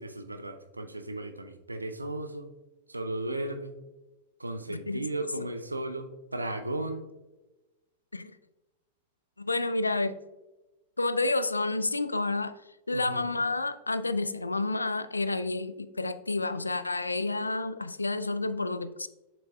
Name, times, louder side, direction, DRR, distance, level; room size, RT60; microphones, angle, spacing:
voice 1, 0.0-2.5 2.9-3.7 4.4-7.1 12.9-13.3, right 1 dB, 85° right, 8 dB, 0.5 m, -35 dB
voice 2, 4.7-5.0 8.1-8.3 9.4-10.2 11.0-12.6 12.9-19.1, left 2 dB, 80° left, 13 dB, 0.3 m, -30 dB
7.1 x 6.1 x 2.3 m, 1.1 s
figure-of-eight pair, 90°, 0 cm